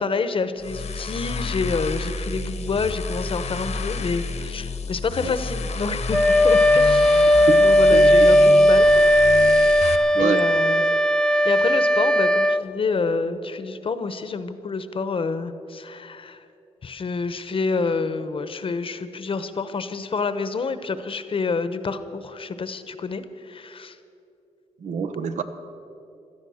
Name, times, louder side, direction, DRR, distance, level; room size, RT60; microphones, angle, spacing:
voice 1, 0.0-8.9 10.2-10.9 11.3-16.4 16.8-24.0, left 4 dB, 50° left, 11 dB, 1.0 m, -28 dB
sound 1, 0.6-10.0, left 4 dB, 70° left, 1.2 m, -30 dB
Wind instrument woodwind instrument, 6.1-12.7, equal, 5° left, 0.5 m, -16 dB
voice 2, 10.1-10.5 24.8-25.4, right 6 dB, 75° right, 9 dB, 1.0 m, -25 dB
17.5 x 12.5 x 6.4 m, 2.7 s
cardioid pair, 90°, 12 cm